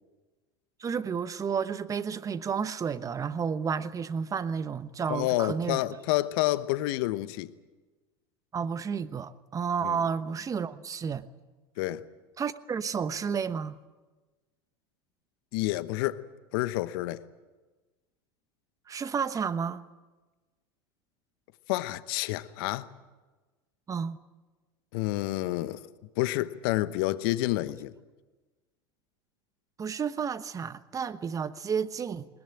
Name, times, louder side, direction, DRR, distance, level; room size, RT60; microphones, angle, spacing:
voice 1, 0.8-5.8 8.5-11.3 12.4-13.8 18.9-19.8 23.9-24.2 29.8-32.3, right 6 dB, 25° right, 1.1 m, -31 dB
voice 2, 5.1-7.5 9.8-10.0 11.8-12.0 15.5-16.2 16.5-17.2 21.7-22.9 24.9-25.9 26.2-27.9, left 17 dB, 65° left, 1.0 m, -29 dB
20.5 x 20.5 x 9.0 m
hypercardioid pair, 85°, 13 cm